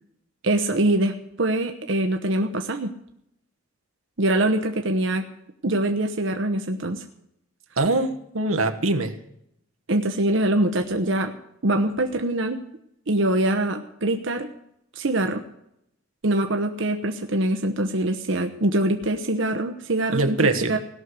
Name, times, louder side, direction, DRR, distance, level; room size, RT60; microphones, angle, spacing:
voice 1, 0.4-2.9 4.2-5.3 5.6-7.0 9.9-11.3 11.6-12.6 13.1-14.5 14.9-15.4 16.2-20.8, right 1 dB, 60° right, 5 dB, 1.0 m, -23 dB
voice 2, 7.8-9.2 20.1-20.8, right 2 dB, 85° right, 7 dB, 1.4 m, -23 dB
17.5 x 6.5 x 9.5 m, 0.77 s
head